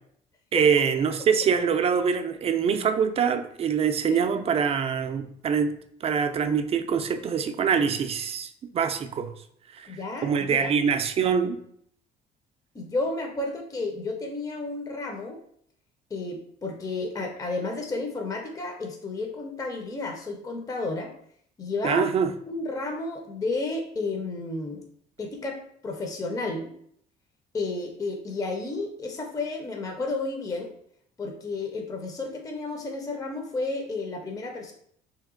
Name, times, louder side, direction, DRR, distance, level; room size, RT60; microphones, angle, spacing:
voice 1, 0.5-5.8 6.0-9.3 9.7-11.6 21.8-22.3, right 6 dB, 35° right, 8 dB, 0.4 m, -24 dB
voice 2, 9.9-10.7 12.7-15.4 16.1-21.1 21.6-22.1 22.5-24.8 25.2-25.6 25.8-26.7 27.5-30.7 31.2-34.7, left 3 dB, 20° left, 2 dB, 0.5 m, -32 dB
3.2 x 2.8 x 3.6 m, 0.66 s
cardioid pair, 110°, 17 cm